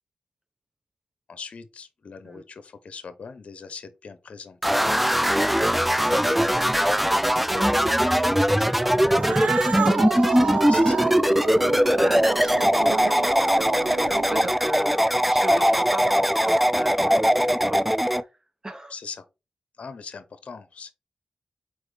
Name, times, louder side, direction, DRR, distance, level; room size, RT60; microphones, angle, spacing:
voice 1, 1.3-4.8 6.0-6.5 7.7-7.8 10.5-11.1 15.4-15.7 18.9-19.2 19.8-20.9, left 5 dB, 70° left, 0.7 m, -41 dB
sound 1, 4.6-18.2, equal, 5° right, 0.5 m, -21 dB
voice 2, 6.0-7.2 7.5-9.4 9.6-10.5 11.6-15.0 15.3-18.3 18.6-18.9, right 1 dB, 30° right, 1.2 m, -36 dB
Cat, 9.0-14.7, right 6 dB, 90° right, 0.5 m, -30 dB
4.8 x 4.3 x 5.0 m
cardioid pair, 50°, 2 cm